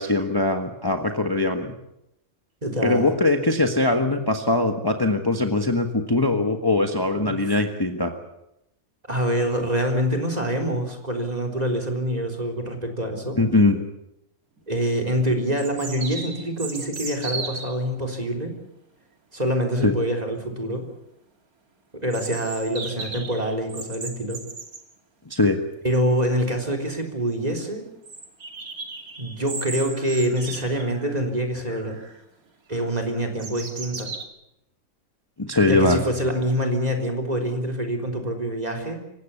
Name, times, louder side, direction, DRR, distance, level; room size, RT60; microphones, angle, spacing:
voice 1, 0.0-1.7 2.8-8.2 13.4-13.8 19.8-19.9 25.3-25.6 35.4-36.0, left 2 dB, 15° left, 5 dB, 1.4 m, -21 dB
voice 2, 2.6-3.1 7.2-7.5 9.1-13.4 14.7-18.5 19.3-20.9 22.0-24.4 25.8-27.9 29.2-32.0 32.7-34.1 35.6-39.0, equal, 30° right, 5 dB, 3.8 m, -25 dB
sound 1, 14.6-14.7 15.6-17.8 22.1-24.8 26.5-26.6 26.8-26.9 27.3-27.4 28.0-31.3 31.7-32.2 32.7-34.2, right 3 dB, 90° right, 3.0 m, -36 dB
26.0 x 16.5 x 8.4 m, 0.84 s
omnidirectional pair, 1.5 m